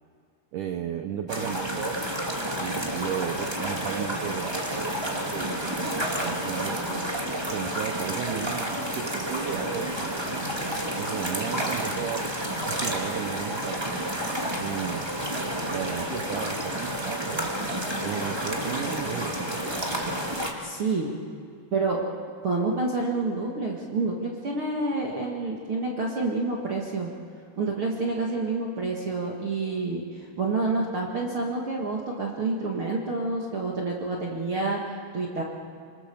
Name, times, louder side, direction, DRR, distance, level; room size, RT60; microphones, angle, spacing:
voice 1, 0.5-2.0 2.6-7.1 7.5-10.5 11.0-12.3 12.6-13.9 14.6-15.1 15.7-17.5 18.0-19.8, right 9 dB, 75° right, 5 dB, 1.9 m, -35 dB
sound 1, 1.3-20.5, right 1 dB, 15° right, 0.9 m, -30 dB
voice 2, 20.6-21.2 21.7-22.0 22.4-27.1 27.6-35.4, right 3 dB, 45° right, -2 dB, 1.9 m, -28 dB
25.5 x 25.0 x 6.9 m, 2.2 s
omnidirectional pair, 4.6 m